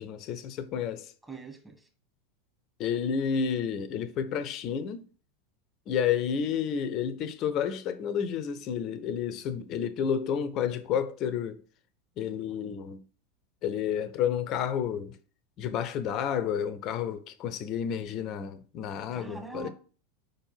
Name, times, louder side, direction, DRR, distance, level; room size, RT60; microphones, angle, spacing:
voice 1, 0.0-1.1 2.8-5.0 5.9-11.6 12.2-13.0 13.6-15.2 15.6-19.7, left 8 dB, 40° left, 0.7 m, -30 dB
voice 2, 1.2-1.9 19.1-19.7, right 4 dB, 10° right, 1.8 m, -43 dB
5.2 x 4.5 x 5.6 m
figure-of-eight pair, 85°, 0 cm